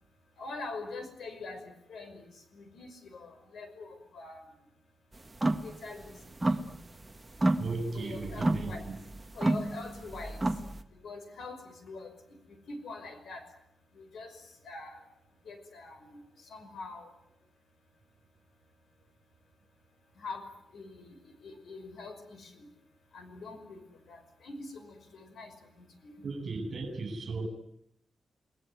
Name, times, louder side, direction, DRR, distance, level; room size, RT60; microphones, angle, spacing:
voice 1, 0.4-2.2 2.5-4.5 5.6-6.2 7.9-8.9 9.3-10.5 10.9-12.1 12.7-13.5 13.9-15.0 15.5-16.2 16.5-17.1 20.2-20.5 20.7-21.2 21.4-22.7 23.1-26.2, left 3 dB, 75° left, 5.7 m, -44 dB
sound 1, 5.3-5.7 6.0-7.0 7.3-10.8, right 2 dB, 15° right, 1.6 m, -30 dB
voice 2, 7.6-9.0 26.2-27.5, right 3 dB, 45° right, 7.1 m, -36 dB
29.0 x 20.0 x 9.4 m
wide cardioid pair, 145°, 0 cm